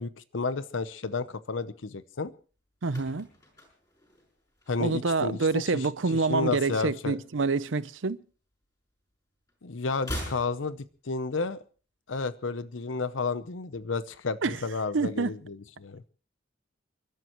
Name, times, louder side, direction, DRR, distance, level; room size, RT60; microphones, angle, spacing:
voice 1, 0.0-2.3 4.7-5.9 6.3-7.2 9.6-11.6 12.1-16.0, left 4 dB, 80° left, 0.8 m, -32 dB
sound 1, 2.5-5.2 5.5-5.8 6.1-7.5 7.8-9.2 9.4-11.5 11.8-11.9, equal, 20° left, 5.9 m, -42 dB
voice 2, 2.8-3.3 4.8-8.2 14.4-14.6 14.9-15.4, right 4 dB, 80° right, 0.7 m, -27 dB
29.5 x 12.5 x 3.1 m
head